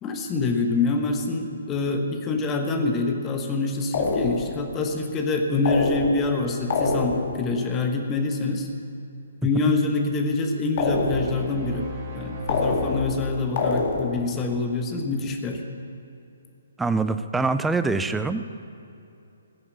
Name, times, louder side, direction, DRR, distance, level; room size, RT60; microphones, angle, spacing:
voice 1, 0.0-8.7 9.4-11.9 12.1-15.6, left 3 dB, 20° left, 3 dB, 1.2 m, -26 dB
sound 1, 3.9-4.6 5.6-6.4 6.7-7.4 10.8-11.5 12.5-13.2 13.6-14.3, left 3 dB, 45° left, 1.9 m, -25 dB
sound 2, 10.9-13.9, equal, 35° right, 2.9 m, -36 dB
voice 2, 16.8-18.6, right 3 dB, 5° right, 11 dB, 0.5 m, -24 dB
15.5 x 7.2 x 8.3 m, 2.7 s
figure-of-eight pair, 130°, 0 cm